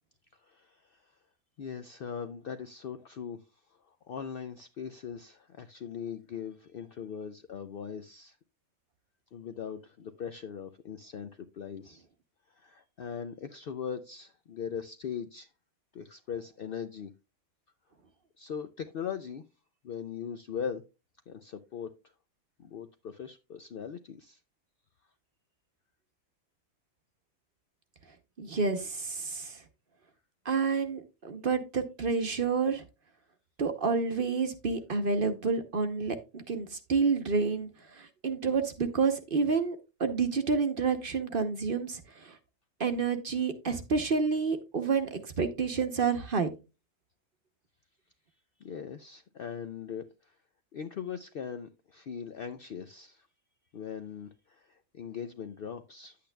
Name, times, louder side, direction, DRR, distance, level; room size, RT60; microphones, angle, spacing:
voice 1, 0.3-1.2 1.6-3.4 3.7-8.4 9.3-12.0 12.5-15.5 15.9-17.1 18.4-19.4 19.8-20.8 21.3-21.9 22.6-24.4 48.6-50.3 50.7-53.3 53.7-56.2, left 7 dB, 65° left, 0.5 m, -40 dB
voice 2, 28.4-29.6 30.4-32.8 33.6-42.4 42.8-46.5, right 5 dB, 45° right, 0.9 m, -29 dB
10.0 x 8.4 x 2.2 m
omnidirectional pair, 1.4 m